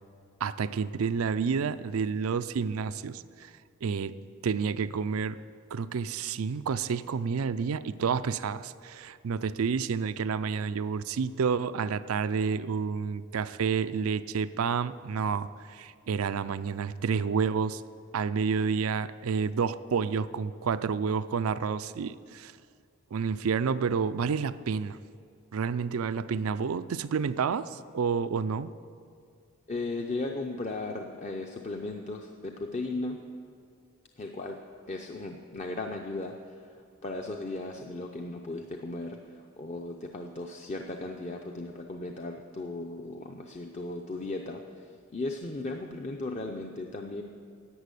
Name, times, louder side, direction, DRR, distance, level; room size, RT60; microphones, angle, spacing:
voice 1, 0.4-3.5 3.8-4.1 4.4-5.4 5.7-17.8 18.1-22.5 23.1-25.0 25.5-28.7, right 6 dB, 80° right, 14 dB, 0.4 m, -29 dB
voice 2, 29.7-33.2 34.2-34.6 34.9-36.3 37.0-39.2 39.6-44.6 45.1-47.2, left 2 dB, 35° left, 3 dB, 0.6 m, -36 dB
11.5 x 8.4 x 8.2 m, 2.3 s
head